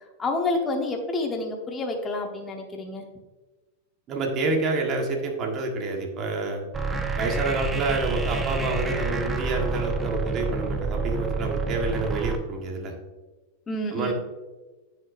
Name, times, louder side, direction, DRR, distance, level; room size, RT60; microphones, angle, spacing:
voice 1, 0.0-3.1 13.7-14.1, left 2 dB, 20° left, 2 dB, 1.0 m, -29 dB
voice 2, 4.1-6.6 7.2-12.9 13.9-14.1, right 3 dB, 35° right, 1 dB, 1.4 m, -28 dB
sound 1, 6.7-12.4, right 3 dB, 15° right, 0.7 m, -28 dB
9.7 x 5.3 x 2.6 m, 1.2 s
supercardioid pair, 130°, 0 cm